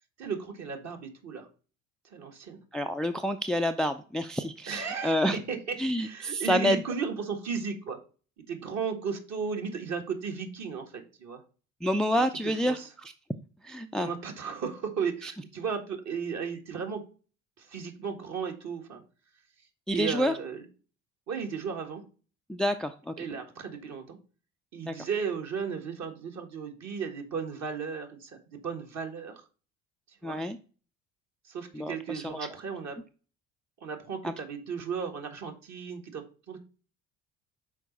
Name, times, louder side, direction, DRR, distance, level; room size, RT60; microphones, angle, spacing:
voice 1, 0.2-1.5 2.1-2.6 4.7-8.0 8.5-11.4 12.1-12.9 14.0-17.1 17.6-19.0 19.9-20.7 21.3-22.0 23.2-24.2 24.7-29.4 30.2-30.4 31.4-33.0 33.8-36.6, right 6 dB, 45° right, 4 dB, 1.6 m, -35 dB
voice 2, 2.7-5.4 5.8-6.8 11.8-13.1 13.6-14.1 15.2-15.3 19.9-20.4 22.5-23.1 24.9-25.0 30.2-30.6 31.7-32.5 34.2-34.3, equal, ahead, 9 dB, 0.4 m, -28 dB
6.3 x 4.2 x 4.0 m, 0.37 s
hypercardioid pair, 55°, 36 cm